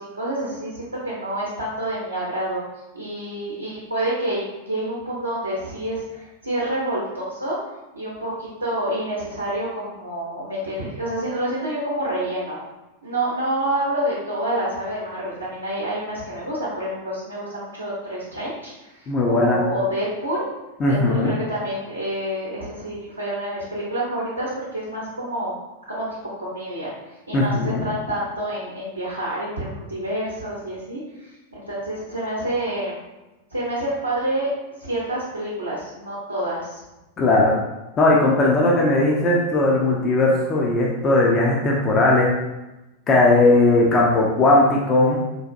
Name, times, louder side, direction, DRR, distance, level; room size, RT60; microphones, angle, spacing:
voice 1, 0.0-2.6 2.9-7.6 7.9-12.6 13.0-20.5 20.9-25.5 25.9-26.1 26.4-33.0 33.5-34.5 34.8-36.8, right 1 dB, 80° right, -7 dB, 0.7 m, -28 dB
voice 2, 19.1-19.6 20.8-21.3 27.3-27.8 37.2-37.6 38.0-42.3 43.1-45.2, left 2 dB, 25° left, -3 dB, 0.5 m, -18 dB
4.0 x 2.5 x 2.4 m, 1.0 s
figure-of-eight pair, 90°, 0 cm